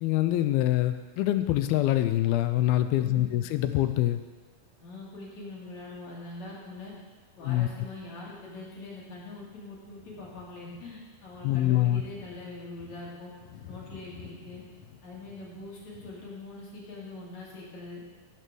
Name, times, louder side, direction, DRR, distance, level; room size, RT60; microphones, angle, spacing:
voice 1, 0.0-4.2 7.4-7.7 11.4-12.0, left 14 dB, 85° left, 10 dB, 2.5 m, -25 dB
voice 2, 3.0-3.4 4.8-6.9 7.4-13.3 13.7-14.6 15.0-18.0, left 2 dB, 55° left, -5 dB, 3.6 m, -43 dB
sound 1, 9.7-16.3, left 6 dB, 70° left, 2.4 m, -51 dB
14.0 x 5.6 x 6.3 m, 1.3 s
omnidirectional pair, 4.3 m